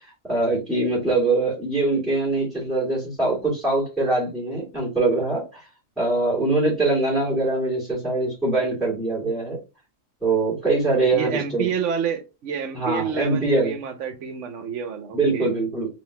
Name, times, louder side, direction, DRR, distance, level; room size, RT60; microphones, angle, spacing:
voice 1, 0.2-5.6 6.0-9.6 10.2-11.7 12.7-13.7 15.1-15.9, right 2 dB, ahead, -5 dB, 1.8 m, -23 dB
voice 2, 11.1-15.5, right 7 dB, 70° right, 8 dB, 1.0 m, -29 dB
3.8 x 2.7 x 3.2 m, 0.29 s
omnidirectional pair, 1.3 m